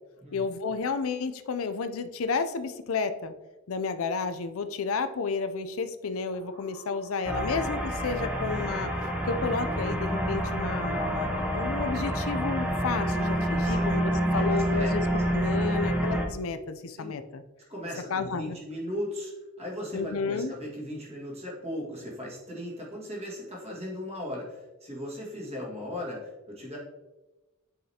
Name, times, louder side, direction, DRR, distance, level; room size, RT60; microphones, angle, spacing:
voice 1, 0.3-3.3 3.7-8.9 9.3-15.0 15.3-17.4 18.1-18.6 19.9-20.5, left 4 dB, 65° left, 10 dB, 0.5 m, -31 dB
sound 1, 6.3-15.8, equal, 60° right, 2.0 m, -44 dB
sound 2, 7.2-16.3, equal, 5° right, 0.8 m, -28 dB
voice 2, 14.4-14.9 17.0-17.1 17.7-26.8, left 1 dB, 30° right, -3 dB, 1.8 m, -37 dB
7.9 x 5.0 x 2.8 m, 1.1 s
head